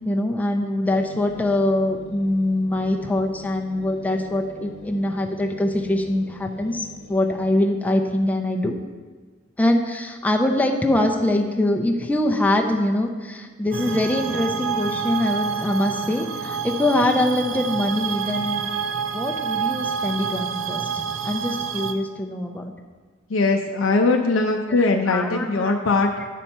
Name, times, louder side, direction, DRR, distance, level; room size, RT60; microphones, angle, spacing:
voice 1, 0.0-8.7 9.6-18.7 19.1-22.6 24.7-24.8 25.1-25.8, left 1 dB, 10° left, 1 dB, 0.5 m, -23 dB
sound 1, 0.9-7.6, equal, 40° left, 1.1 m, -44 dB
sound 2, 13.7-21.9, right 6 dB, 70° right, 0.5 m, -28 dB
voice 2, 23.3-26.3, left 3 dB, 75° left, 2 dB, 0.5 m, -20 dB
9.2 x 4.3 x 5.4 m, 1.5 s
head